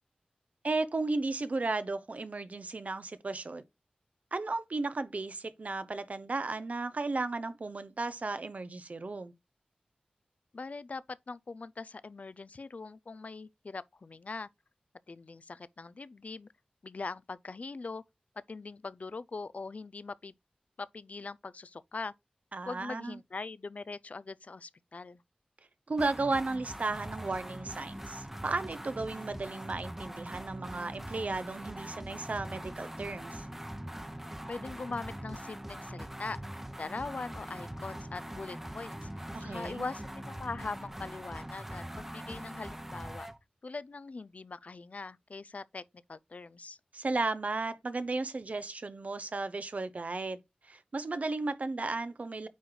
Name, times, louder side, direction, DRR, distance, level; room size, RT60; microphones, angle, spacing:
voice 1, 0.6-3.6 4.3-9.3 22.5-23.2 25.9-33.5 39.3-39.8 46.9-50.4 50.7-52.5, right 3 dB, 60° right, 0.7 m, -34 dB
voice 2, 10.5-14.5 15.1-16.5 16.8-18.0 18.5-20.3 20.8-22.1 22.7-25.2 34.5-36.4 36.8-43.3 43.6-45.8 46.1-46.8, left 3 dB, 60° left, 0.4 m, -41 dB
sound 1, 26.0-43.4, equal, 10° right, 0.9 m, -42 dB
9.2 x 3.1 x 3.9 m
cardioid pair, 45°, 3 cm